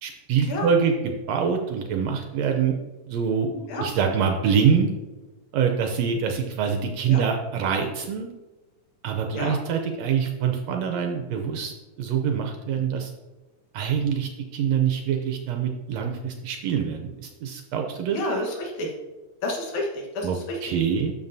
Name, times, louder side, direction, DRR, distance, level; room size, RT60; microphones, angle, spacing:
voice 1, 0.0-2.8 3.1-4.9 5.5-8.3 9.0-13.1 13.7-18.2 20.2-21.1, right 7 dB, 75° right, 4 dB, 1.7 m, -25 dB
voice 2, 18.1-18.9 19.4-20.6, left 1 dB, 70° left, 0 dB, 2.7 m, -29 dB
12.0 x 5.5 x 2.7 m, 1.1 s
omnidirectional pair, 3.5 m